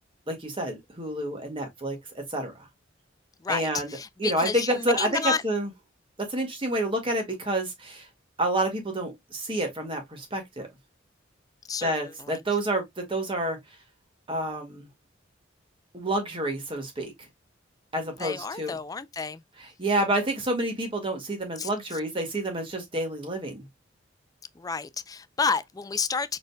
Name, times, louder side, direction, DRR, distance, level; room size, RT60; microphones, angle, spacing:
voice 1, 0.3-2.5 3.5-5.7 6.3-8.1 8.4-10.7 11.8-13.6 14.3-14.9 15.9-17.1 17.9-18.8 19.6-23.7, right 1 dB, 30° right, 1.9 m, -29 dB
voice 2, 3.4-5.4 11.7-11.9 12.2-12.4 18.2-19.4 21.6-21.7 24.6-26.4, left 5 dB, 20° left, 0.4 m, -30 dB
5.1 x 4.3 x 2.2 m
head